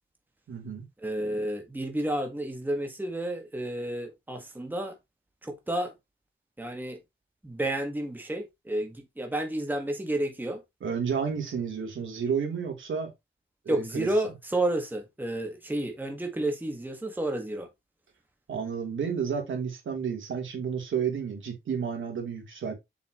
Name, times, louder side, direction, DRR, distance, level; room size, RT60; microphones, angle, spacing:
voice 1, 0.5-0.8 10.8-13.1 13.6-14.1 18.5-22.7, right 6 dB, 65° right, 3.3 m, -31 dB
voice 2, 1.0-5.0 5.4-5.9 6.6-7.0 7.4-10.6 13.7-17.7, right 1 dB, 10° right, 1.7 m, -31 dB
7.2 x 5.8 x 3.1 m
cardioid pair, 90°, 21 cm